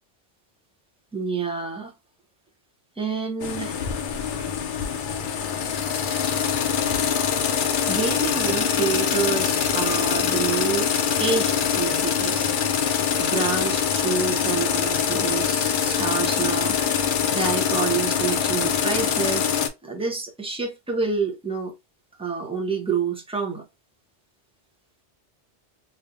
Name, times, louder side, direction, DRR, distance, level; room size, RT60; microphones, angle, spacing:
voice 1, 1.1-1.9 3.0-3.8 7.5-10.9 11.2-12.5 12.8-21.7 22.2-23.6, right 5 dB, 5° right, 0.8 m, -28 dB
sound 1, 3.4-19.7, left 7 dB, 55° left, 0.6 m, -24 dB
3.2 x 2.9 x 2.5 m
omnidirectional pair, 1.2 m